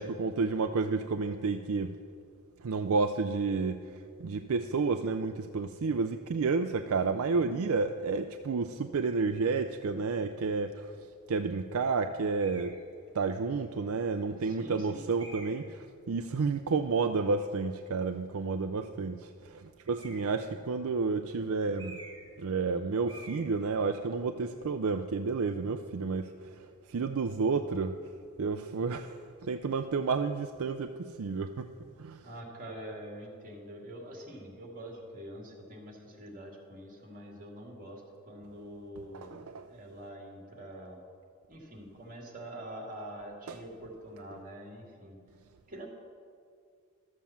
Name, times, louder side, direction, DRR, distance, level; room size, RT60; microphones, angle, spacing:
voice 1, 0.0-1.9 2.6-3.8 4.2-10.9 11.3-12.7 13.1-22.0 22.4-28.0 28.4-31.7 32.0-32.3 39.1-39.6 43.5-43.6, right 4 dB, 65° right, 7 dB, 0.5 m, -31 dB
sound 1, 12.4-12.8 13.6-13.7 15.2-15.7 19.8-20.4 21.7-22.3 22.6-22.8 23.1-23.5, right 2 dB, 20° right, 3.0 m, -49 dB
voice 2, 14.4-15.1 32.2-39.3 39.7-41.0 41.5-45.1 45.7-45.9, right 1 dB, 40° right, 0 dB, 2.3 m, -45 dB
13.0 x 7.5 x 7.1 m, 2.3 s
head